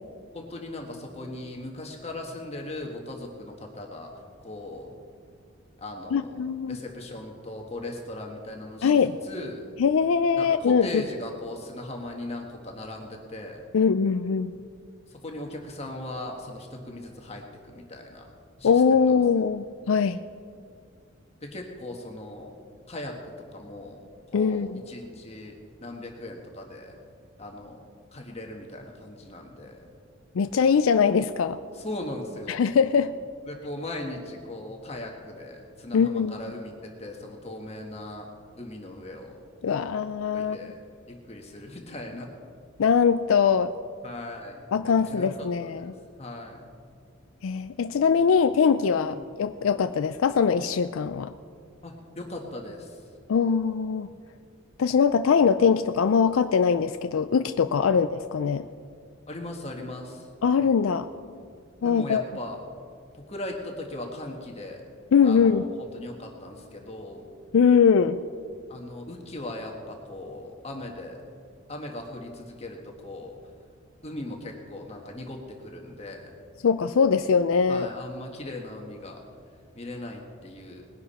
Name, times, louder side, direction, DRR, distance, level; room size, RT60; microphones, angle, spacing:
voice 1, 0.3-4.1 4.4-4.9 5.8-6.3 6.7-8.9 9.2-9.7 10.3-13.7 15.1-18.3 18.6-19.1 21.4-22.5 22.9-23.2 23.5-24.1 24.3-25.5 25.8-27.0 27.4-29.9 31.7-32.6 33.5-38.3 38.6-39.9 40.3-40.8 41.1-42.2 44.0-45.9 46.2-46.7 49.1-49.3 51.8-53.0 57.8-57.9 59.3-60.3 61.8-62.6 63.1-64.8 65.2-67.3 68.7-71.2 71.7-73.4 74.0-76.3 77.7-79.2 79.7-80.8, left 1 dB, 30° left, 1 dB, 1.4 m, -38 dB
voice 2, 6.1-6.8 8.8-9.2 9.8-11.0 13.7-14.5 18.6-20.2 24.3-24.8 30.3-31.6 32.5-33.1 35.9-36.4 39.6-40.7 42.8-43.7 44.7-45.9 47.4-51.3 53.3-54.1 54.8-58.7 60.4-61.1 61.8-62.2 65.1-65.6 67.5-68.2 76.6-77.9, left 6 dB, 75° left, 10 dB, 0.4 m, -22 dB
20.0 x 11.0 x 4.2 m, 2.2 s
head